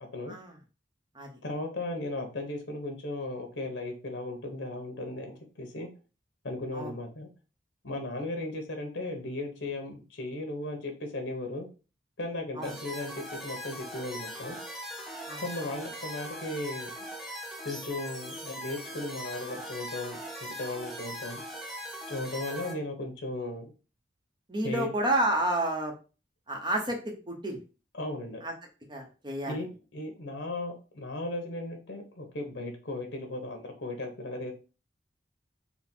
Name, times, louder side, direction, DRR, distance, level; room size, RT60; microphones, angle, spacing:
voice 1, 1.4-5.9 6.4-7.3 7.8-11.7 12.2-14.6 15.4-16.9 17.6-20.2 20.6-21.4 22.1-23.7 24.6-24.9 27.9-28.4 29.5-34.5, left 2 dB, 75° left, 4 dB, 1.0 m, -36 dB
sound 1, 12.6-22.7, equal, ahead, 0.8 m, -40 dB
voice 2, 24.5-26.0 26.5-27.6 28.4-28.5 28.9-29.6, right 1 dB, 25° right, 1 dB, 0.9 m, -30 dB
4.2 x 2.3 x 4.3 m, 0.33 s
head